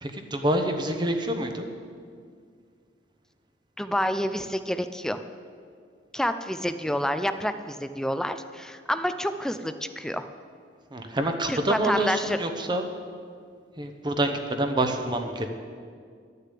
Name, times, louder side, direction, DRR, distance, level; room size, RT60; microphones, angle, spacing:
voice 1, 0.0-1.7 10.9-12.8 13.8-15.5, right 1 dB, 25° right, 5 dB, 0.9 m, -27 dB
voice 2, 3.8-5.2 6.1-10.3 11.5-12.4, equal, 5° left, 10 dB, 0.4 m, -28 dB
12.0 x 6.7 x 8.3 m, 2.1 s
head